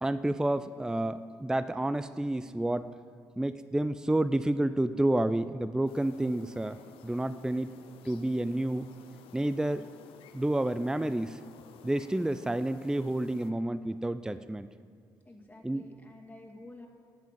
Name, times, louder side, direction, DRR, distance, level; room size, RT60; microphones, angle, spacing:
voice 1, 0.0-2.9 3.4-7.7 8.1-8.9 9.3-9.9 10.3-11.4 11.8-14.7 15.6-15.9, right 1 dB, 5° right, 14 dB, 0.4 m, -30 dB
sound 1, 5.9-13.5, left 8 dB, 70° left, 0.6 m, -54 dB
voice 2, 15.2-16.9, left 2 dB, 15° left, 0 dB, 2.2 m, -50 dB
11.0 x 8.3 x 7.6 m, 2.3 s
hypercardioid pair, 40°, 10 cm